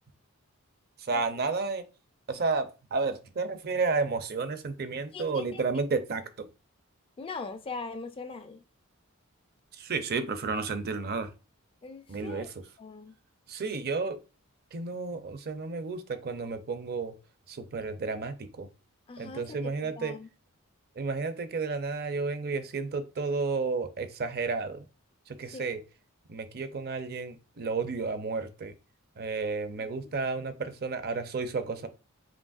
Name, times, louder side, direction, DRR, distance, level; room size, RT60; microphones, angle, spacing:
voice 1, 1.0-1.8 2.3-6.5 9.7-11.3 12.1-12.5 13.5-14.2 14.7-17.1 17.5-18.7 19.2-20.1 21.0-24.8 25.3-25.8 26.3-28.7 29.2-31.9, right 4 dB, 45° right, 0.5 m, -32 dB
voice 2, 5.1-5.6 7.2-8.6 11.8-12.5 12.8-13.1 19.1-20.3 25.5-25.6 29.8-29.9, left 4 dB, 25° left, 0.3 m, -41 dB
5.2 x 2.9 x 2.4 m
head